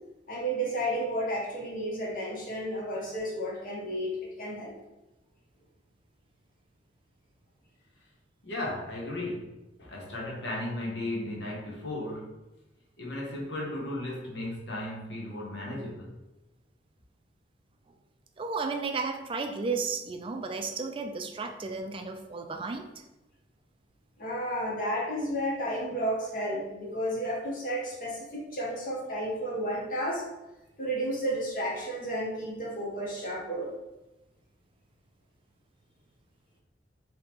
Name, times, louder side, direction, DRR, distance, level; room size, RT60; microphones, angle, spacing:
voice 1, 0.3-4.7 24.2-30.2 30.8-33.7, right 1 dB, 50° left, -3 dB, 0.8 m, -32 dB
voice 2, 8.4-12.4 13.0-16.2, left 1 dB, 75° left, -3 dB, 0.8 m, -35 dB
voice 3, 18.4-22.9, right 4 dB, 30° right, 5 dB, 0.3 m, -33 dB
3.5 x 2.8 x 2.9 m, 1.0 s
head